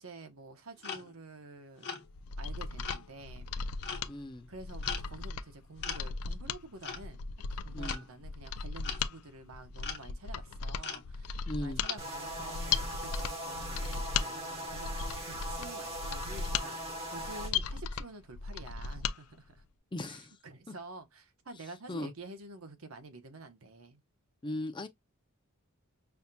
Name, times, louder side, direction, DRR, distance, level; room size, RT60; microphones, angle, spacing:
voice 1, 0.0-2.0 2.4-3.5 4.5-7.2 7.5-19.6 20.0-24.0, right 2 dB, 75° right, 1.0 m, -49 dB
sound 1, 0.8-1.2 1.8-2.1 2.8-3.1 3.8-4.1 4.8-5.1 5.8-6.1 6.8-7.1 7.8-8.1 8.8-9.0 9.8-10.0 10.8-11.1 11.8-12.0, left 6 dB, 50° left, 1.1 m, -39 dB
Mechanisms, 2.1-19.2 19.5-19.6, left 5 dB, 85° left, 0.4 m, -37 dB
voice 2, 4.1-4.5 7.7-8.0 11.5-11.8 19.9-20.4 20.7-20.8 21.9-22.1 24.4-24.9, left 1 dB, 20° left, 0.5 m, -38 dB
sound 2, 12.0-17.5, equal, 25° right, 1.3 m, -40 dB
5.6 x 2.8 x 2.2 m
head